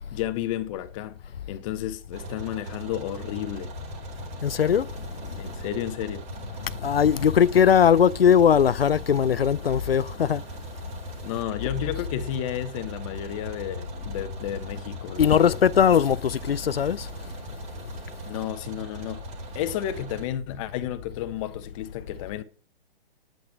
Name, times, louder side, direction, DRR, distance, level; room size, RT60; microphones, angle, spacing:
voice 1, 0.1-1.2 1.5-3.7 5.4-6.2 11.2-15.6 18.3-19.3 19.5-22.4, left 11 dB, 35° left, 1.3 m, -32 dB
sound 1, 2.1-20.3, right 3 dB, 25° right, 2.6 m, -40 dB
voice 2, 4.4-4.9 6.8-10.4 15.2-17.1, left 8 dB, 85° left, 0.5 m, -20 dB
9.2 x 8.7 x 6.1 m
figure-of-eight pair, 130°, 29 cm